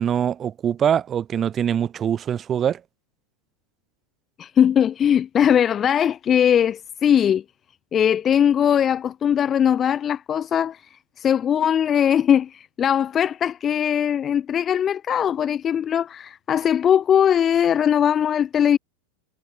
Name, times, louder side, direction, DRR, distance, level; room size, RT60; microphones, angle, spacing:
voice 1, 0.0-2.8, right 9 dB, 25° right, 1.0 m, -23 dB
voice 2, 4.4-7.4 7.9-18.8, left 9 dB, 25° left, 1.8 m, -20 dB
figure-of-eight pair, 90°, 0 cm